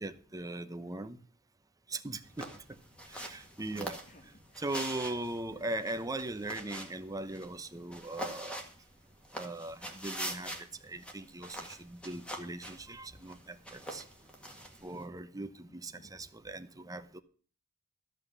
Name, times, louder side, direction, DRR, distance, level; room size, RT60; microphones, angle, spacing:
voice 1, 0.0-1.2 1.9-2.5 3.1-4.0 4.6-8.6 9.3-14.0 14.8-17.2, right 2 dB, 15° right, 0.8 m, -39 dB
sound 1, 2.2-15.0, equal, 5° left, 1.8 m, -45 dB
voice 2, 4.0-5.2 16.0-16.1, left 1 dB, 35° left, 1.4 m, -57 dB
13.5 x 5.6 x 8.0 m
head